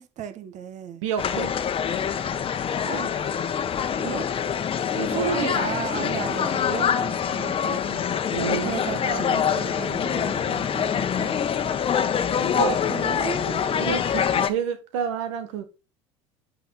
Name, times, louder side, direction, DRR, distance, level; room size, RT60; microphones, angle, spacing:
voice 1, 0.0-1.0 2.8-3.1 3.9-4.3 5.1-8.0 8.5-11.3 12.4-13.9, right 8 dB, 50° right, 1.2 m, -35 dB
voice 2, 1.0-1.6 5.0-5.5 8.3-9.0 12.5-12.8 13.8-15.6, right 7 dB, 80° right, 1.3 m, -29 dB
sound 1, 1.2-14.5, left 8 dB, 35° left, 1.1 m, -25 dB
11.0 x 4.2 x 4.2 m
hypercardioid pair, 75°, 16 cm